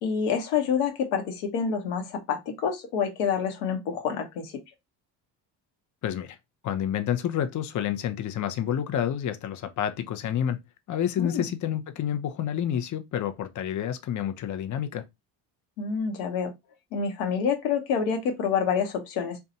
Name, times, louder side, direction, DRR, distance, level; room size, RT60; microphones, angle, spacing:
voice 1, 0.0-4.6 11.2-11.5 15.8-16.5 16.9-19.4, left 6 dB, 85° left, 0.9 m, -27 dB
voice 2, 6.0-6.4 6.6-10.6 10.9-15.0, left 9 dB, 40° left, 0.6 m, -29 dB
2.6 x 2.3 x 4.0 m
supercardioid pair, 65°, 48 cm